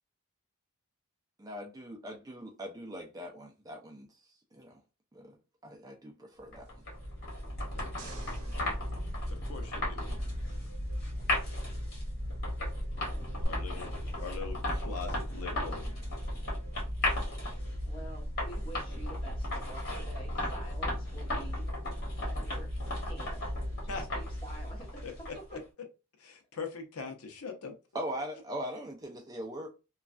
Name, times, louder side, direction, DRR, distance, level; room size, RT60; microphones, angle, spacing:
voice 1, 1.4-4.1 4.5-4.8 5.1-5.4 5.6-6.7 27.9-29.7, equal, 15° right, 0.4 m, -41 dB
sound 1, 6.5-25.5, left 1 dB, 40° left, 1.4 m, -35 dB
sound 2, 7.8-10.3 13.4-13.5, right 3 dB, 70° right, 0.7 m, -51 dB
voice 2, 9.3-10.0 13.4-13.9 14.2-15.8 23.9-24.0 25.0-25.1 26.2-27.7, left 5 dB, 80° left, 0.7 m, -41 dB
voice 3, 17.9-21.7 22.2-23.4 23.8-25.6, right 2 dB, 20° left, 1.1 m, -48 dB
3.1 x 2.3 x 2.4 m
head